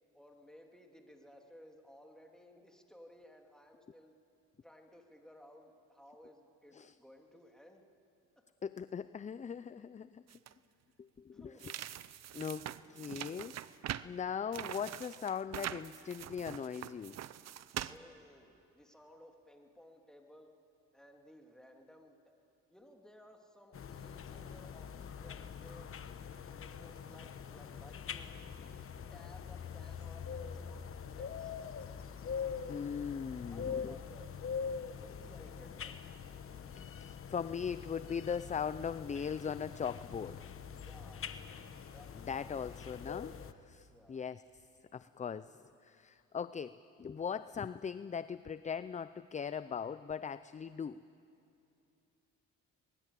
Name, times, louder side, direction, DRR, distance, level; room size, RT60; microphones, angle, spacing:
voice 1, 0.1-4.1 4.6-7.9 8.4-8.5 11.3-11.6 17.9-20.5 20.9-22.4 22.7-26.0 26.3-28.3 29.1-31.6 33.5-34.3 34.6-36.3 40.7-41.3 41.9-42.4 43.9-44.2, left 1 dB, ahead, 2 dB, 2.8 m, -58 dB
voice 2, 8.6-10.2 11.0-11.4 12.3-13.6 14.0-17.2 32.7-33.9 36.7-40.4 42.3-43.3 43.6-44.4 44.9-51.0, left 7 dB, 25° left, 15 dB, 0.5 m, -39 dB
sound 1, 10.3-10.5 11.6-14.1 14.5-18.0, right 11 dB, 60° right, 0.7 m, -43 dB
sound 2, 23.7-43.5, left 7 dB, 45° left, 1.2 m, -44 dB
23.0 x 20.5 x 8.4 m, 2.7 s
cardioid pair, 90°, 30 cm